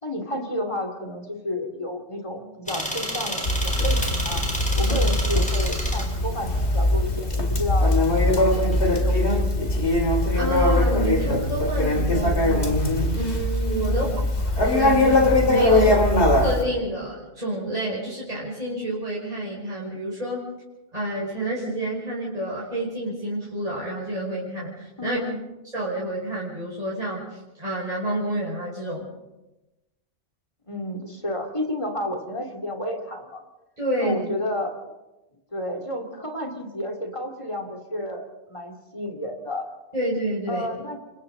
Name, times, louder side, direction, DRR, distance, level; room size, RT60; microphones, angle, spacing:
voice 1, 0.0-4.4 4.7-9.8 13.9-14.2 25.0-25.4 30.7-33.4 34.0-34.9 35.5-39.6 40.5-41.0, left 1 dB, 25° left, 3 dB, 2.8 m, -31 dB
sound 1, 2.7-9.0, equal, 5° left, 4.3 m, -31 dB
Conversation, 3.4-16.6, left 1 dB, 65° left, 2.8 m, -21 dB
voice 2, 10.3-14.1 14.5-20.4 20.9-25.2 25.7-29.1 33.8-34.2 39.9-40.7, right 1 dB, 30° right, -6 dB, 5.8 m, -29 dB
29.0 x 25.5 x 3.9 m, 1.0 s
omnidirectional pair, 1.2 m